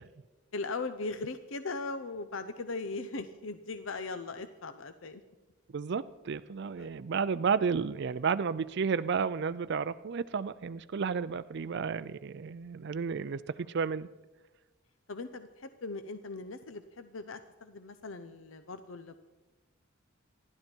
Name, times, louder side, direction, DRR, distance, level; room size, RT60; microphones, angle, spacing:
voice 1, 0.5-5.2 6.8-6.9 15.1-19.2, left 3 dB, 75° left, 10 dB, 0.7 m, -39 dB
voice 2, 5.7-14.1, right 5 dB, 55° right, 12 dB, 0.4 m, -32 dB
27.0 x 12.0 x 4.5 m, 1.1 s
head